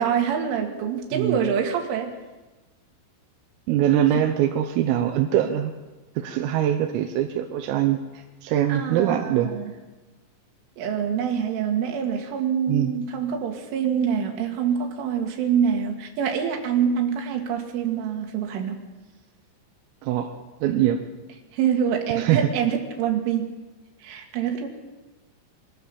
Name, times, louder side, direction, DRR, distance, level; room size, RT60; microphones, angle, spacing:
voice 1, 0.0-2.1 8.7-9.7 10.8-18.8 21.5-23.5 24.0-24.7, right 8 dB, 75° right, 3 dB, 4.6 m, -25 dB
voice 2, 3.7-5.7 6.2-9.5 12.7-12.9 20.0-20.3 20.6-21.0 22.2-22.5, right 11 dB, 90° right, 4 dB, 3.7 m, -23 dB
23.5 x 15.5 x 7.2 m, 1.2 s
omnidirectional pair, 5.8 m